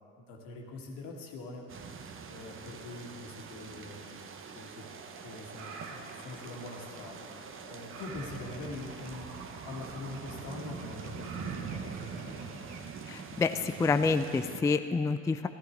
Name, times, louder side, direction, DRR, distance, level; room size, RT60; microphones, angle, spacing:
voice 1, 0.2-1.6 2.3-4.2 4.5-4.9 5.2-9.4 9.6-12.5, left 2 dB, 65° left, 0 dB, 1.8 m, -44 dB
sound 1, 1.7-14.6, right 6 dB, 35° right, 0.9 m, -44 dB
sound 2, 4.8-12.8, right 4 dB, 75° right, 1.2 m, -49 dB
voice 2, 13.1-15.5, left 4 dB, 10° left, 9 dB, 0.3 m, -28 dB
15.0 x 13.0 x 3.3 m, 2.4 s
hypercardioid pair, 55°, 36 cm